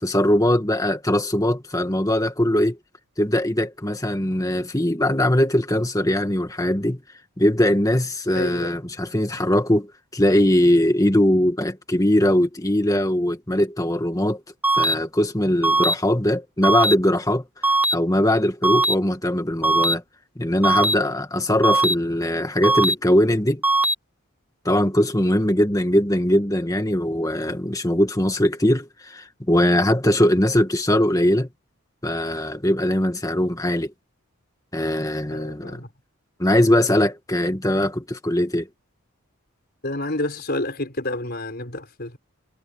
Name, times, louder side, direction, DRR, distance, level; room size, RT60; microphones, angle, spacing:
voice 1, 0.0-2.8 3.2-7.0 7.4-14.4 14.7-20.0 20.3-23.6 24.6-31.5 32.0-33.9 34.7-35.8 36.4-38.7, left 1 dB, 15° left, 1.8 m, -21 dB
voice 2, 8.3-8.7 35.3-35.9 39.8-42.2, left 2 dB, 45° left, 4.7 m, -29 dB
sound 1, 14.6-14.9 15.6-15.9 16.6-16.9 17.6-17.9 18.6-18.9 19.6-19.9 20.6-20.9 21.6-21.9 22.6-22.9 23.6-23.9, right 2 dB, 10° right, 0.5 m, -19 dB
head